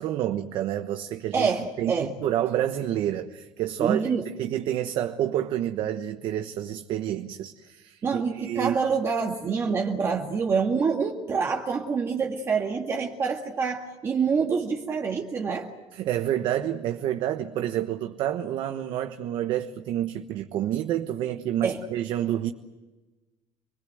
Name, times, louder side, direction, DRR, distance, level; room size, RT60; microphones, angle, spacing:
voice 1, 0.0-1.5 1.8-4.0 4.4-8.8 15.9-22.5, right 11 dB, 60° right, 1.2 m, -28 dB
voice 2, 1.3-2.1 3.8-4.3 8.0-15.7 21.6-21.8, right 5 dB, 30° right, 1.9 m, -26 dB
28.0 x 21.0 x 7.9 m
cardioid pair, 150°, 9 cm